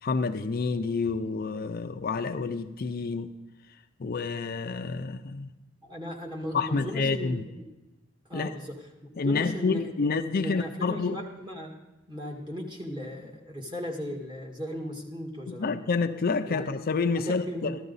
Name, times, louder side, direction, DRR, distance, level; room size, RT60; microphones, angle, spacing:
voice 1, 0.0-3.3 4.0-5.5 6.5-7.4 8.3-8.5 9.2-11.2 15.5-17.8, left 4 dB, 50° left, 0.5 m, -28 dB
voice 2, 5.8-7.4 8.3-8.8 9.2-10.1 10.3-11.8 12.1-15.9 16.4-16.7 17.1-17.8, left 1 dB, 25° right, 1.8 m, -37 dB
14.0 x 12.0 x 4.0 m
head